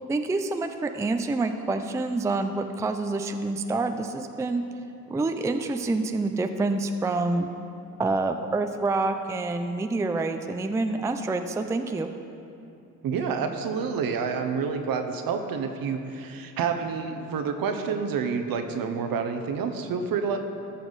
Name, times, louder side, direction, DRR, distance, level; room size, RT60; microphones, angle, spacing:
voice 1, 0.1-4.6 5.1-7.5 8.0-12.1, right 3 dB, 10° right, 7 dB, 0.4 m, -27 dB
voice 2, 13.0-20.4, right 5 dB, 60° right, 6 dB, 1.0 m, -28 dB
14.0 x 5.9 x 4.0 m, 2.7 s
supercardioid pair, 75°, 38 cm